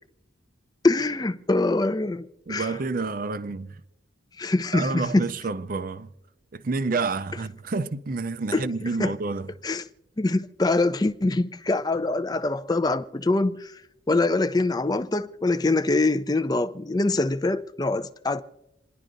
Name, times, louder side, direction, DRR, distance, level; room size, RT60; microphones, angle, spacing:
voice 1, 0.8-2.8 4.4-5.2 8.5-8.7 9.0-9.1 9.6-9.8 10.2-13.7 14.1-18.4, left 2 dB, 20° left, 0.5 m, -24 dB
voice 2, 2.5-3.8 4.7-6.1 6.5-9.5, right 3 dB, 45° right, 0.5 m, -29 dB
28.0 x 11.0 x 2.6 m
head